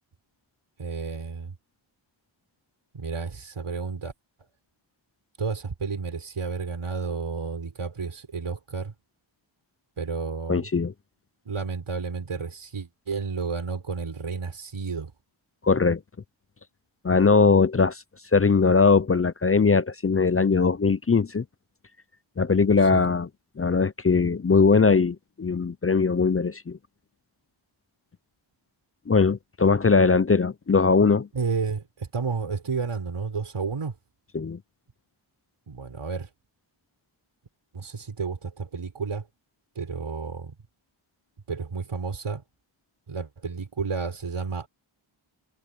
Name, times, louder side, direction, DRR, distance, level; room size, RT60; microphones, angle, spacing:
voice 1, 0.8-1.5 2.9-4.1 5.4-8.9 10.0-10.6 11.4-15.1 22.9-23.1 31.3-33.9 35.7-36.3 37.7-39.3 39.7-40.5 41.5-42.4 43.1-44.7, right 5 dB, 90° right, 4.8 m, -31 dB
voice 2, 10.5-10.9 15.6-16.0 17.0-18.0 18.3-21.4 22.4-23.3 23.6-26.8 29.1-31.3 34.3-34.6, left 4 dB, 30° left, 0.5 m, -20 dB
wide cardioid pair, 95°, 48 cm